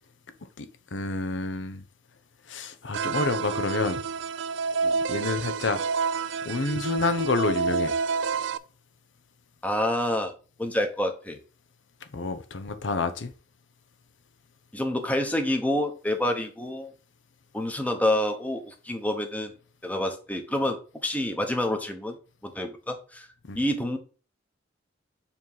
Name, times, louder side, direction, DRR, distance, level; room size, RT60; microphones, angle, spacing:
voice 1, 0.6-1.8 2.5-4.0 5.1-5.8 6.4-7.9 12.1-13.3 23.5-23.6, left 3 dB, 70° left, 0.7 m, -29 dB
sound 1, 2.9-8.6, right 5 dB, 70° right, 0.4 m, -28 dB
voice 2, 9.6-10.3 10.6-11.4 14.7-16.9 17.5-19.5 19.8-22.2 22.4-23.3 23.6-24.0, left 1 dB, 10° left, 0.9 m, -28 dB
7.2 x 3.1 x 5.4 m
head